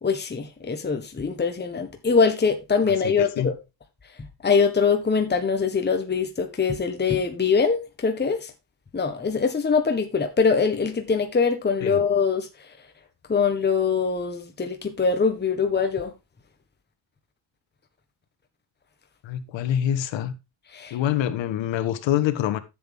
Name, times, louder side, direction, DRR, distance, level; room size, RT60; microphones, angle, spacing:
voice 1, 0.0-3.5 4.4-8.5 8.9-12.5 13.3-16.1 20.7-21.0, left 5 dB, 20° left, 1.5 m, -23 dB
voice 2, 2.8-3.5 11.8-12.0 19.2-20.3 20.9-22.6, left 10 dB, 70° left, 1.5 m, -26 dB
10.0 x 7.7 x 3.6 m
cardioid pair, 95°, 47 cm